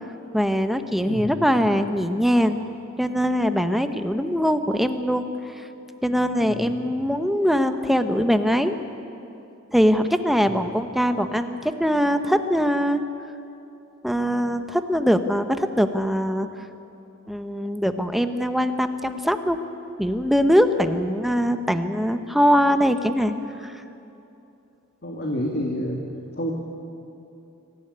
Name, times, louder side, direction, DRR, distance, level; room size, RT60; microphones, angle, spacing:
voice 1, 0.3-2.6 3.0-5.3 5.5-5.7 6.0-8.7 9.7-13.0 14.0-16.5 17.3-19.6 20.0-23.4 23.6-23.8, equal, ahead, 7 dB, 0.9 m, -22 dB
voice 2, 1.1-1.4 6.4-6.8 10.3-10.5 25.0-26.0 26.3-26.5, equal, 50° left, -1 dB, 2.2 m, -29 dB
24.0 x 15.0 x 9.9 m, 2.8 s
head